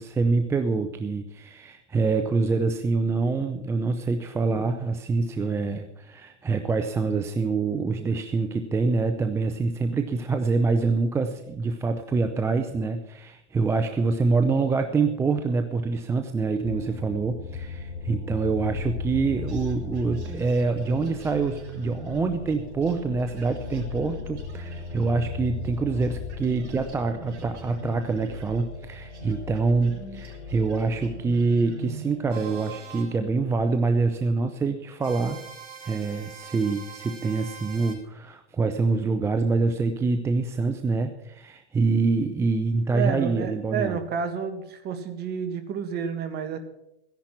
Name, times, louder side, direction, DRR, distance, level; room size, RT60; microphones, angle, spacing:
voice 1, 0.0-35.4 35.8-44.0, right 4 dB, 10° right, 7 dB, 0.4 m, -25 dB
sound 1, 16.6-32.2, left 4 dB, 85° left, 2.2 m, -37 dB
sound 2, 19.5-25.8 26.0-32.2, right 3 dB, 80° right, 4.5 m, -44 dB
sound 3, 32.3-33.1 35.0-37.9, right 7 dB, 50° right, 4.4 m, -43 dB
voice 2, 42.9-46.6, right 7 dB, 30° right, 8 dB, 1.7 m, -30 dB
15.0 x 10.5 x 5.9 m, 0.84 s
hypercardioid pair, 135°, 34 cm